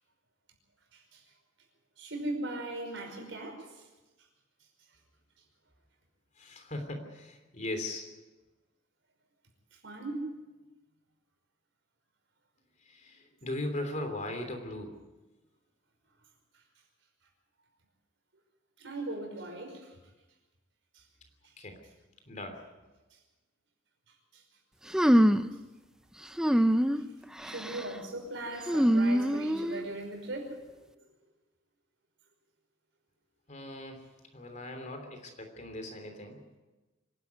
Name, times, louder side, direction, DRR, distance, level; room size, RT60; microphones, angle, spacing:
voice 1, 0.9-1.2 2.0-3.9 9.7-10.4 18.8-20.0 20.9-21.0 24.3-24.4 27.0-27.1 27.4-30.9, right 2 dB, 75° right, 3 dB, 5.4 m, -39 dB
voice 2, 6.4-8.1 12.9-14.9 21.6-21.8 22.3-22.6 33.5-34.1 34.3-36.4, left 1 dB, 40° left, 5 dB, 3.2 m, -38 dB
sound 1, 24.9-25.6 26.4-27.0 27.4-27.8 28.7-29.8, equal, 5° right, 0.6 m, -24 dB
25.0 x 12.0 x 9.6 m, 1.1 s
head